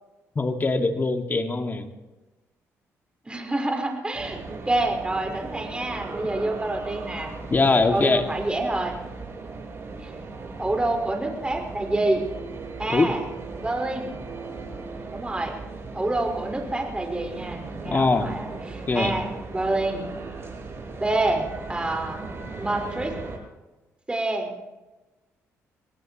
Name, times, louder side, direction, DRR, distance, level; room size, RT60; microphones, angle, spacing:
voice 1, 0.4-1.9 7.5-8.2 12.9-13.1 17.9-18.3 18.9-19.1, left 3 dB, 35° left, 5 dB, 2.2 m, -22 dB
voice 2, 3.2-7.3 7.7-8.9 10.0-10.1 10.6-12.3 12.8-13.2 13.6-14.2 15.1-15.5 15.9-20.1 21.0-22.2 22.6-23.1 24.1-24.5, right 2 dB, 15° right, 1 dB, 4.9 m, -27 dB
sound 1, 4.1-23.4, right 3 dB, 45° right, 8.0 m, -38 dB
25.0 x 18.5 x 3.1 m, 1.1 s
supercardioid pair, 70°, 6 cm